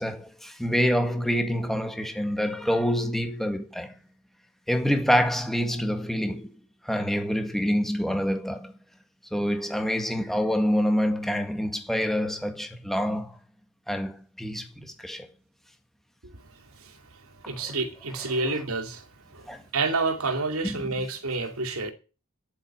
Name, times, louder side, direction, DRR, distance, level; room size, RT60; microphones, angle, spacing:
voice 1, 0.0-4.0 4.7-6.6 6.8-8.7 9.3-13.4 13.9-15.3 17.4-17.7 18.5-18.6 19.5-19.6 20.6-20.8, equal, ahead, 1.8 m, -26 dB
voice 2, 16.8-21.9, right 3 dB, 90° right, 2.6 m, -30 dB
10.0 x 8.1 x 9.1 m
head